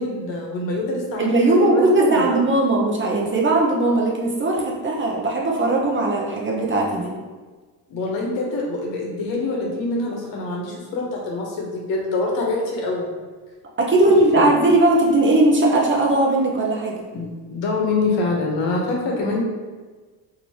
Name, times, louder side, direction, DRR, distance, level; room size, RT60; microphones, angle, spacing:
voice 1, 0.0-1.3 1.6-2.4 7.9-13.1 14.3-14.5 17.1-19.4, left 2 dB, 75° left, -1 dB, 1.0 m, -25 dB
voice 2, 1.2-7.1 13.8-17.0, right 2 dB, 25° right, -2 dB, 0.5 m, -18 dB
3.0 x 2.8 x 2.7 m, 1.4 s
cardioid pair, 95°, 45 cm